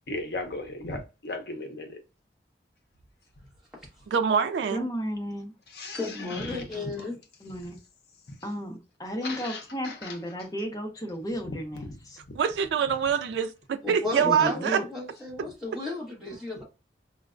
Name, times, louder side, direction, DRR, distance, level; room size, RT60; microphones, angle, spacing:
voice 1, 0.1-2.0 5.7-6.7 8.3-8.4 9.2-10.2 11.5-11.6 11.9-12.0 12.3-12.4, left 2 dB, 60° left, 0.7 m, -37 dB
voice 2, 4.1-4.9 12.3-14.8, right 7 dB, 75° right, 0.3 m, -25 dB
voice 3, 4.7-5.5 6.4-6.7 7.4-7.8 8.4-11.9 14.2-14.8, equal, 20° left, 0.6 m, -34 dB
voice 4, 5.9-7.2 13.8-16.6, left 3 dB, 5° right, 1.1 m, -34 dB
4.3 x 2.1 x 2.4 m
head